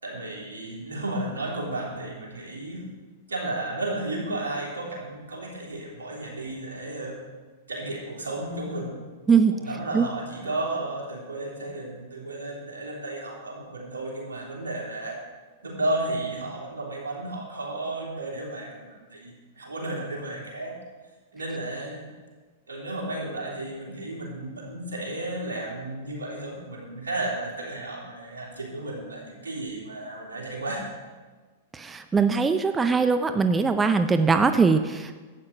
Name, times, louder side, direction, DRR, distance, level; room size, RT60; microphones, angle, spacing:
voice 1, 0.0-2.9 3.3-7.2 7.7-9.0 9.5-15.2 15.6-20.8 21.3-22.1 22.7-30.9, right 2 dB, 85° right, -2 dB, 3.3 m, -33 dB
voice 2, 31.7-35.2, right 5 dB, 15° right, 9 dB, 0.6 m, -21 dB
12.0 x 8.6 x 5.2 m, 1.3 s
hypercardioid pair, 105°, 0 cm